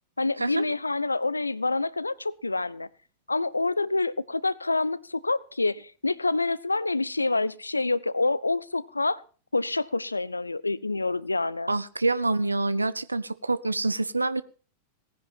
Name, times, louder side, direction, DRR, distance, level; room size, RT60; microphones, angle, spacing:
voice 1, 0.2-2.9 3.3-9.2 9.5-11.7, left 3 dB, 80° left, 21 dB, 0.6 m, -27 dB
voice 2, 11.7-14.4, right 2 dB, 80° right, 17 dB, 0.6 m, -26 dB
18.5 x 10.5 x 5.8 m, 0.39 s
figure-of-eight pair, 90°, 0 cm